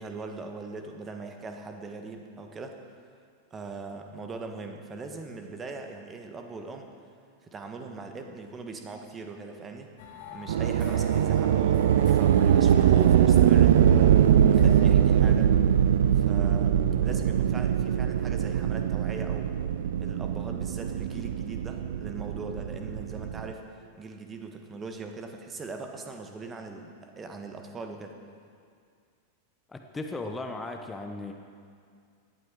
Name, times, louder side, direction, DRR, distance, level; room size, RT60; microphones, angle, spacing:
voice 1, 0.0-2.8 3.5-6.9 7.4-9.9 10.3-14.2 14.5-15.5 16.1-16.7 17.0-19.5 20.0-23.6 24.0-28.1, right 3 dB, 20° right, 4 dB, 1.5 m, -40 dB
sound 1, 10.0-15.0, left 4 dB, 55° left, 2.4 m, -45 dB
sound 2, 10.5-23.5, right 9 dB, 60° right, 0.5 m, -22 dB
voice 2, 29.7-31.3, left 2 dB, 10° left, 4 dB, 1.0 m, -36 dB
18.0 x 11.5 x 4.7 m, 2.2 s
figure-of-eight pair, 90°, 0 cm